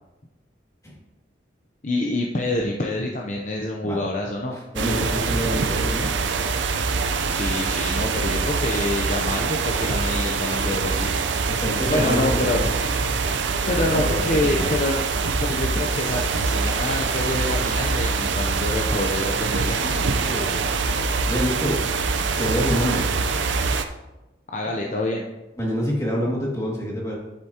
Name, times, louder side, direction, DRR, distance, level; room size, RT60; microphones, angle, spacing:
voice 1, 1.8-4.6 7.3-11.2 11.9-12.6 13.7-19.9 24.5-25.2, left 1 dB, 40° left, 0 dB, 0.6 m, -27 dB
voice 2, 4.5-6.1 11.5-12.7 13.7-14.8 20.2-20.6 21.0-21.8 22.4-23.0 25.6-27.1, equal, 15° left, -3 dB, 2.1 m, -27 dB
sound 1, 4.8-23.8, right 4 dB, 85° right, 0.6 m, -24 dB
10.5 x 8.1 x 2.9 m, 1.0 s
head